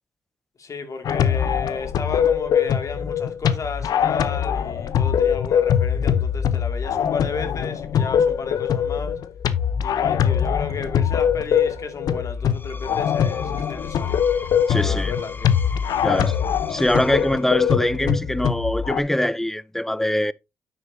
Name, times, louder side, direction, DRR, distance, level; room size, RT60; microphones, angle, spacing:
voice 1, 0.6-9.2 9.8-14.2 14.7-15.6, left 4 dB, 50° left, 2.3 m, -33 dB
sound 1, 1.0-19.0, left 8 dB, 75° left, 0.8 m, -22 dB
sound 2, 10.4-15.7, right 4 dB, 60° right, 2.3 m, -44 dB
Screech, 12.4-17.9, left 3 dB, 30° left, 1.4 m, -41 dB
voice 2, 14.7-15.1 16.0-16.4 16.7-20.3, left 1 dB, 5° left, 0.5 m, -23 dB
9.4 x 8.2 x 2.7 m
supercardioid pair, 60°, 7 cm